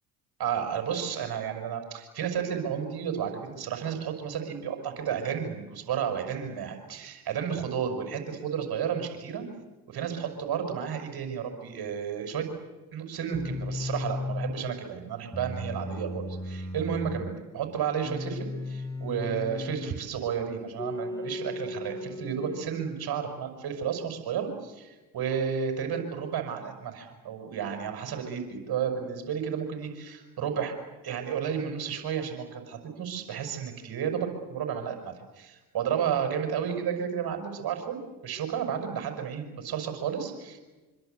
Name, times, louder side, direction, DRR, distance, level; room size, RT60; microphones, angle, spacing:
voice 1, 0.4-9.4 9.9-12.5 12.9-30.7 31.0-40.6, right 7 dB, 55° right, 5 dB, 6.1 m, -32 dB
sound 1, 13.3-14.6 15.3-17.4 18.0-20.0 20.8-22.8, left 2 dB, 10° left, 2.8 m, -36 dB
25.5 x 25.0 x 8.1 m, 1.2 s
hypercardioid pair, 50°, 44 cm